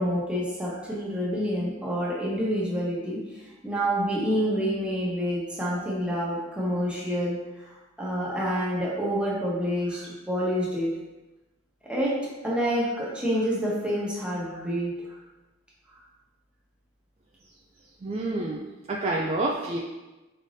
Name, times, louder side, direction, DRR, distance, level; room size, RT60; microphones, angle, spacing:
voice 1, 0.0-3.2 3.6-7.4 8.0-10.9 11.8-12.1 12.4-14.9, equal, 5° right, -7 dB, 1.0 m, -27 dB
voice 2, 18.0-19.8, right 2 dB, 30° right, -1 dB, 0.3 m, -28 dB
5.3 x 3.3 x 2.6 m, 1.1 s
head